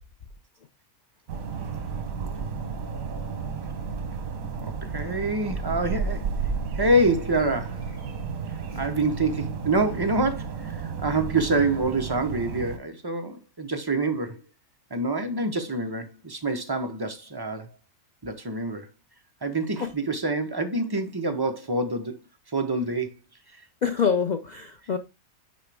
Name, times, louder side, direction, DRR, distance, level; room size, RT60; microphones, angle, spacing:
sound 1, 1.3-12.8, right 5 dB, 85° right, 1.4 m, -32 dB
voice 1, 4.6-6.2 6.8-7.8 8.8-14.4 14.9-17.7 18.2-18.9 19.4-22.1 22.5-23.1, right 2 dB, 20° right, 0.7 m, -26 dB
voice 2, 23.8-25.0, left 6 dB, 65° left, 0.4 m, -25 dB
6.1 x 5.1 x 3.4 m
omnidirectional pair, 1.4 m